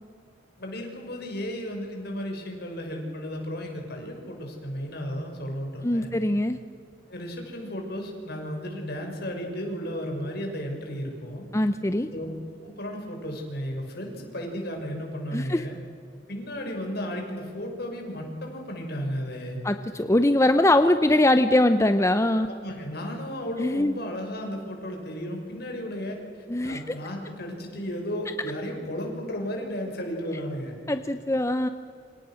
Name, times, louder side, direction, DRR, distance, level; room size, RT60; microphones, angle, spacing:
voice 1, 0.6-6.1 7.1-11.4 12.1-12.3 12.6-15.8 16.3-19.6 22.4-26.2 26.6-30.7, equal, 55° left, 2 dB, 6.2 m, -34 dB
voice 2, 5.8-6.6 11.5-12.1 15.3-15.6 19.6-22.5 23.6-23.9 26.5-27.0 30.9-31.7, left 1 dB, 15° left, 10 dB, 0.7 m, -22 dB
28.0 x 27.0 x 6.4 m, 2.4 s
head